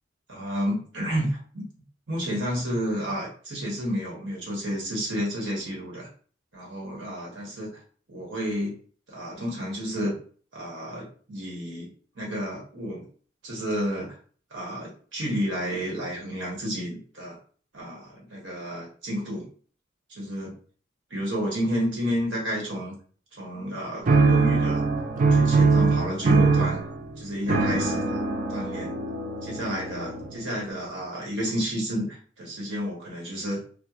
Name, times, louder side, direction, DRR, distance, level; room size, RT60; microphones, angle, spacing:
voice 1, 0.3-1.7 2.1-6.1 6.5-7.8 8.1-8.8 9.1-10.2 10.5-11.9 12.1-13.0 13.4-14.2 14.5-17.4 17.7-19.5 20.1-20.5 21.1-23.0 23.3-24.8 25.3-26.8 27.2-28.2 28.5-28.9 29.4-33.6, equal, 70° right, -3 dB, 1.0 m, -31 dB
sound 1, 24.0-30.5, right 4 dB, 40° right, 0.4 m, -22 dB
2.9 x 2.0 x 2.3 m, 0.43 s
head